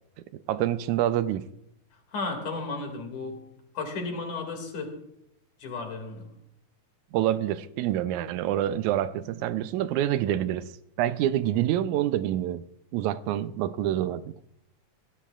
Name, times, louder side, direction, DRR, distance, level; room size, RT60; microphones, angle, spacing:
voice 1, 0.3-1.4 7.1-10.7 11.0-12.7 12.9-14.3, right 12 dB, 90° right, 2.1 m, -27 dB
voice 2, 2.1-3.5 3.7-5.0 5.6-6.3, left 3 dB, 85° left, 3.8 m, -34 dB
22.0 x 15.5 x 2.4 m
omnidirectional pair, 3.3 m